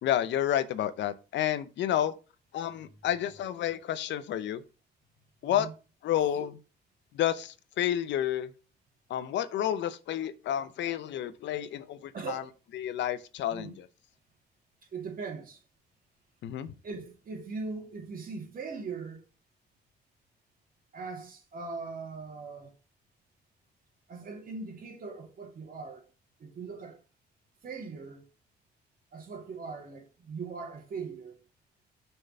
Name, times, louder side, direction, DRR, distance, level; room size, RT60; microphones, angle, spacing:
voice 1, 0.0-2.1 2.5-4.6 5.4-5.7 6.0-6.6 7.1-8.5 9.1-12.4 12.7-13.9 16.4-16.7, left 11 dB, 80° left, 0.7 m, -30 dB
voice 2, 12.1-12.5 13.5-13.7 14.9-15.6 16.8-19.2 20.9-22.7 24.1-26.1 26.4-27.0 27.6-28.3 29.1-31.4, right 4 dB, 50° right, 2.4 m, -40 dB
6.6 x 4.6 x 5.3 m
cardioid pair, 90°, 18 cm